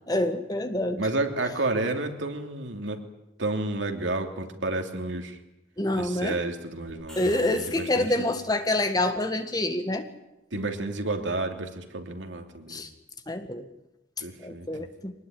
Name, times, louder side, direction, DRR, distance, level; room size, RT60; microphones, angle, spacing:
voice 1, 0.1-1.0 5.8-6.4 7.2-10.1 12.7-12.9 13.3-13.7 14.4-15.1, left 1 dB, 20° left, 8 dB, 1.8 m, -27 dB
voice 2, 1.0-3.0 3.4-5.4 5.9-8.1 10.5-12.8 14.2-14.9, right 2 dB, 75° right, 4 dB, 3.0 m, -31 dB
sound 1, 6.9-8.8, equal, 5° left, 5.3 m, -49 dB
24.0 x 20.0 x 9.6 m, 0.89 s
head